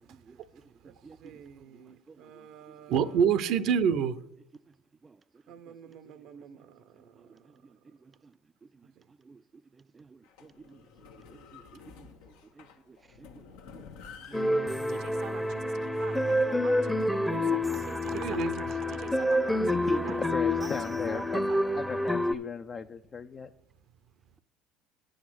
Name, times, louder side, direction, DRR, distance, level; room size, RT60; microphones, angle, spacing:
voice 1, 0.1-2.5 5.0-5.2 5.5-5.8 6.0-6.4 7.2-7.5 8.0-8.3 8.6-8.7 9.2-9.4 9.8-10.9 11.3-13.9 14.3-14.4, right 4 dB, 25° right, 0.4 m, -56 dB
voice 2, 1.2-4.2 5.5-6.6 15.0-15.4 16.0-19.6 19.9-20.2 20.6-21.6, right 7 dB, 60° right, 0.7 m, -33 dB
sound 1, 10.2-16.5, left 6 dB, 75° left, 1.0 m, -52 dB
sound 2, 14.3-22.4, left 1 dB, ahead, 0.7 m, -28 dB
voice 3, 19.6-21.4 21.7-23.5, left 5 dB, 35° left, 0.5 m, -36 dB
9.6 x 6.4 x 6.3 m
hypercardioid pair, 70°, 0 cm